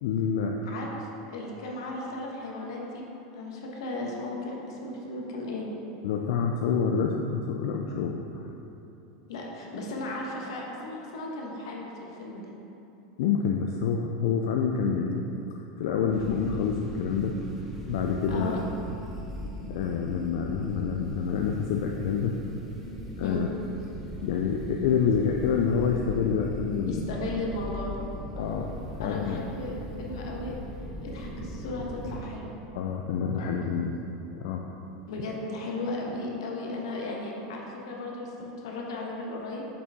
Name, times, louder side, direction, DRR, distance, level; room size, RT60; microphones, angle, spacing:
voice 1, 0.0-0.6 6.0-8.5 13.2-15.2 15.8-17.4 17.9-18.6 19.7-22.4 23.2-23.5 24.2-27.0 28.4-29.4 32.7-34.0 34.3-34.7, left 6 dB, 65° left, 1 dB, 0.4 m, -27 dB
voice 2, 0.6-3.0 3.3-5.7 9.3-12.4 18.3-18.6 23.2-23.4 26.9-28.0 28.3-28.5 29.0-30.6 31.0-32.5 35.1-39.6, left 2 dB, 90° left, -1 dB, 1.2 m, -35 dB
sound 1, 16.1-32.2, equal, ahead, 0.7 m, -39 dB
6.7 x 5.3 x 3.6 m, 2.9 s
supercardioid pair, 170°, 2 cm